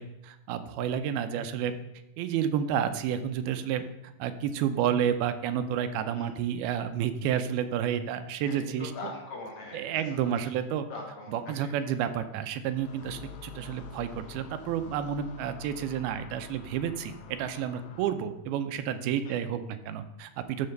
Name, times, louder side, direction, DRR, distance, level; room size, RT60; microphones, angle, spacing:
voice 1, 0.0-1.7 2.2-8.9 9.7-10.9 11.3-20.7, right 9 dB, 80° right, 10 dB, 2.5 m, -30 dB
voice 2, 8.4-10.2 10.4-10.5 10.9-11.7 19.2-19.3, left 3 dB, 40° left, -2 dB, 2.9 m, -42 dB
sound 1, 12.7-18.5, left 5 dB, 75° left, 1.8 m, -48 dB
12.5 x 4.3 x 6.5 m, 0.90 s
omnidirectional pair, 4.4 m